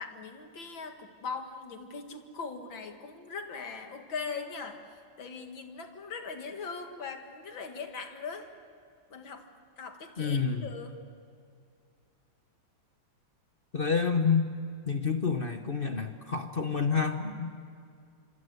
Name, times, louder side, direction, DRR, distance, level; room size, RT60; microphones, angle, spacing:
voice 1, 0.0-4.8 5.2-8.5 9.1-9.4 9.8-10.9, left 5 dB, 75° left, 5 dB, 2.7 m, -40 dB
voice 2, 10.2-10.7 13.7-14.5 14.9-17.7, left 5 dB, 35° left, 6 dB, 1.0 m, -28 dB
26.0 x 25.5 x 8.1 m, 2.3 s
omnidirectional pair, 2.1 m